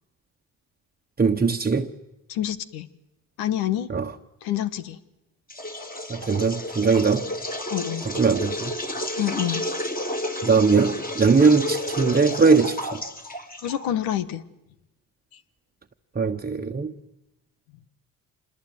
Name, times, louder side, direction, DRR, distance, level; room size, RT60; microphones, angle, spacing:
voice 1, 1.2-2.0 3.9-4.1 6.1-7.3 8.0-8.7 10.4-13.0 16.1-16.9, right 4 dB, 25° right, 1.3 m, -20 dB
voice 2, 2.3-2.9 3.4-3.9 4.4-5.0 7.7-8.0 9.2-9.7 13.6-14.4 15.3-15.4, left 11 dB, 90° left, 1.5 m, -27 dB
sound 1, 5.5-14.0, left 1 dB, 25° left, 3.9 m, -31 dB
27.0 x 21.0 x 9.3 m
supercardioid pair, 70°, 36 cm